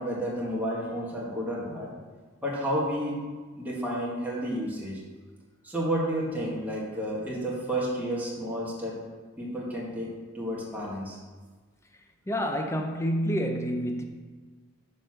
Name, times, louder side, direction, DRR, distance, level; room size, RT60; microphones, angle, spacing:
voice 1, 0.0-1.9 2.4-3.2 3.6-5.0 5.6-9.0 9.4-11.2, equal, 10° right, 1.7 m, -31 dB
voice 2, 12.3-14.0, equal, 10° left, 0.6 m, -28 dB
6.6 x 4.2 x 6.4 m
head